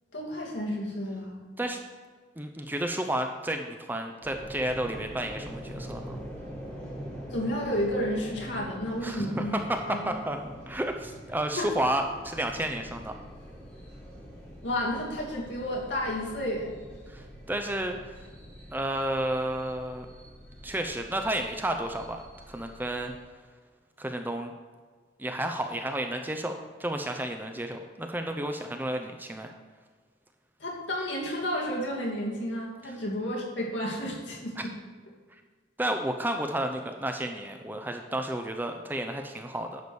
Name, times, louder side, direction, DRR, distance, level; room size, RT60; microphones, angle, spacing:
voice 1, 0.1-1.4 7.3-9.6 9.9-10.2 11.6-11.7 14.6-16.7 30.6-34.7, equal, 65° left, -2 dB, 2.5 m, -31 dB
voice 2, 2.4-6.2 9.0-13.1 17.1-18.0 18.7-20.1 20.6-23.1 24.0-24.5 25.2-26.5 26.8-29.5 34.6-34.7 35.8-39.8, right 1 dB, 10° right, 5 dB, 0.6 m, -31 dB
sound 1, 4.2-23.2, equal, 5° left, 2.7 m, -44 dB
10.5 x 4.9 x 7.0 m, 1.6 s
head